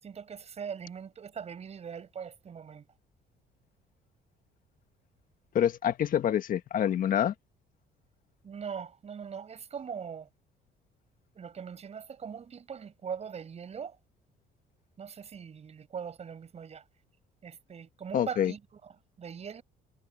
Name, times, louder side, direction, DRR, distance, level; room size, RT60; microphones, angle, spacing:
voice 1, 0.0-2.9 8.4-10.3 11.3-14.0 15.0-16.8 17.4-18.9 19.2-19.6, right 7 dB, 40° right, 6.5 m, -41 dB
voice 2, 5.5-7.3 18.1-18.5, left 9 dB, 55° left, 1.6 m, -26 dB
cardioid pair, 110°, 17 cm